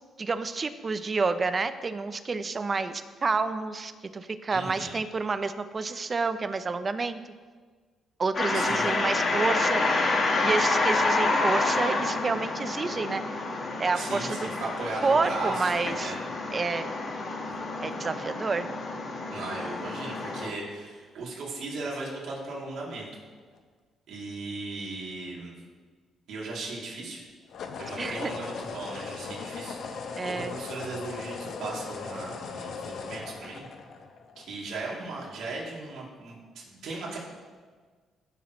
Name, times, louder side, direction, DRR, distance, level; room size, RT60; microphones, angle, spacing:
voice 1, 0.2-7.2 8.2-9.8 10.4-13.2 13.8-14.5 15.0-16.1 16.5-16.9 17.8-18.7 28.0-28.3 30.2-30.5, right 4 dB, 35° right, 11 dB, 0.7 m, -29 dB
voice 2, 4.5-5.0 8.5-8.9 13.9-16.2 17.5-17.6 19.3-23.1 24.1-25.5 26.3-27.2 27.8-33.7 34.4-37.2, right 3 dB, 75° right, -4 dB, 3.0 m, -37 dB
sound 1, 8.3-20.5, left 3 dB, 50° left, 1.7 m, -28 dB
sound 2, 23.3-23.6 27.5-34.6, left 5 dB, 65° left, 1.0 m, -38 dB
16.0 x 7.1 x 3.2 m, 1.5 s
cardioid pair, 90°, 0 cm